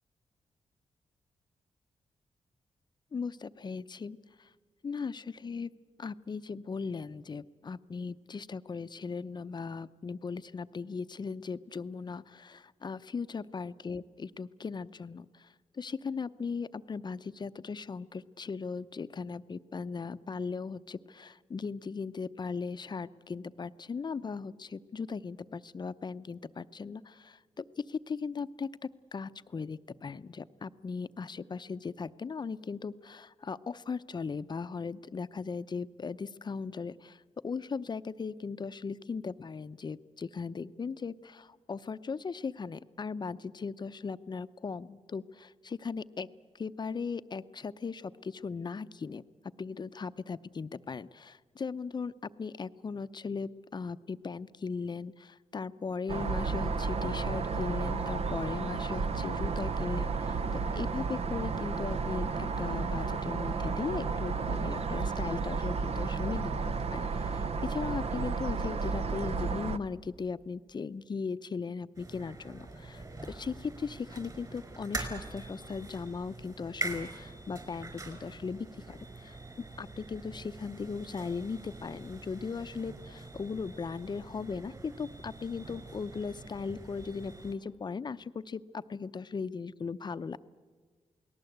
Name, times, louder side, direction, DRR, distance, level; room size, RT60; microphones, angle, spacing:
voice 1, 3.1-4.5 4.8-5.7 6.0-46.3 46.5-49.2 49.6-90.4, left 5 dB, 40° left, 13 dB, 0.7 m, -38 dB
sound 1, 56.1-69.8, right 4 dB, 60° right, 0.9 m, -32 dB
sound 2, 71.9-87.5, right 2 dB, 30° right, 4.8 m, -44 dB
28.5 x 19.0 x 8.0 m, 1.5 s
cardioid pair, 90°, 12 cm